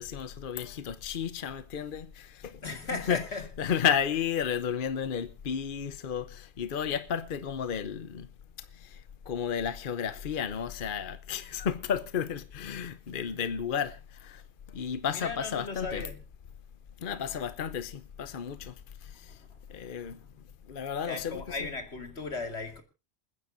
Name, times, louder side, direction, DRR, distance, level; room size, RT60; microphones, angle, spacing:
voice 1, 0.0-2.6 2.9-3.2 3.6-8.3 8.8-9.0 9.3-14.4 14.7-16.1 17.0-18.7 19.0-19.4 19.7-20.2 20.7-21.7, left 8 dB, 55° left, 1.0 m, -32 dB
voice 2, 2.6-3.6 15.0-16.2 17.3-17.5 18.5-18.7 19.1-20.4 21.0-22.8, left 3 dB, 85° left, 2.7 m, -38 dB
28.5 x 9.8 x 2.6 m
omnidirectional pair, 1.1 m